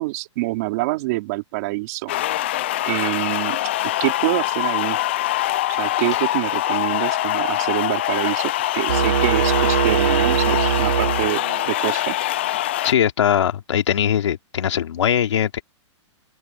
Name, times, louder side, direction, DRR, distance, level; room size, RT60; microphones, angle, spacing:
voice 1, 0.0-2.1 2.9-3.6 4.0-5.0 5.8-12.2, right 21 dB, 30° right, 4.1 m, -26 dB
sound 1, 2.1-12.9, left 15 dB, 25° left, 0.3 m, -23 dB
sound 2, 8.9-11.8, right 9 dB, 60° right, 0.6 m, -21 dB
voice 2, 12.8-15.6, left 9 dB, 70° left, 3.1 m, -21 dB
open air
hypercardioid pair, 175°, 16 cm